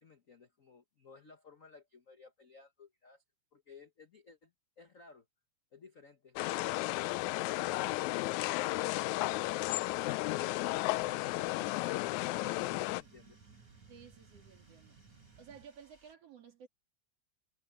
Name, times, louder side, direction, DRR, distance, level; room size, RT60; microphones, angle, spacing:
voice 1, 0.0-3.2 3.5-5.3 5.7-6.9 12.3-13.4, left 4 dB, 55° left, 0.8 m, -58 dB
sound 1, 6.4-13.0, left 19 dB, 85° left, 1.9 m, -33 dB
sound 2, 10.2-16.1, right 2 dB, 25° right, 5.6 m, -67 dB
sound 3, 10.7-15.6, right 5 dB, 85° right, 5.4 m, -60 dB
voice 2, 13.9-15.0 15.4-16.7, right 7 dB, 55° right, 3.1 m, -55 dB
omnidirectional pair, 3.3 m